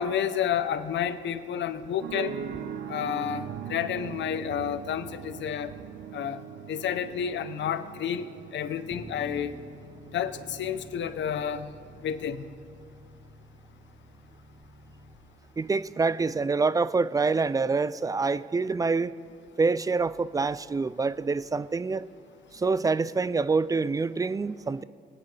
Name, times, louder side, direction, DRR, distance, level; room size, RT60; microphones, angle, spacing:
voice 1, 0.0-2.3 2.9-5.7 6.1-6.4 6.7-8.3 8.5-9.6 10.1-11.7 12.0-12.4, left 8 dB, 65° left, 0.8 m, -30 dB
sound 1, 2.0-12.0, right 8 dB, 65° right, 0.7 m, -41 dB
Bass guitar, 8.9-15.2, left 1 dB, 5° left, 1.2 m, -49 dB
voice 2, 15.6-19.1 19.6-22.1 22.5-24.8, right 4 dB, 20° right, 0.3 m, -26 dB
22.5 x 9.7 x 3.4 m
cardioid pair, 90°, 20 cm